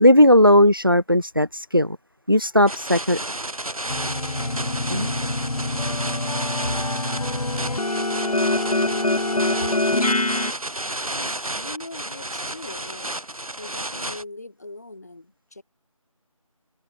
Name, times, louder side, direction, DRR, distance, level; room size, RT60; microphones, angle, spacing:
voice 1, 0.0-2.0 2.3-3.2 4.9-5.1, left 1 dB, 40° right, 0.4 m, -16 dB
sound 1, 2.7-14.2, right 1 dB, 75° right, 1.7 m, -32 dB
sound 2, 3.9-10.5, left 2 dB, 85° left, 1.0 m, -25 dB
voice 2, 8.9-10.4 11.1-13.1 13.6-15.6, left 2 dB, 25° left, 7.5 m, -41 dB
figure-of-eight pair, 175°, 18 cm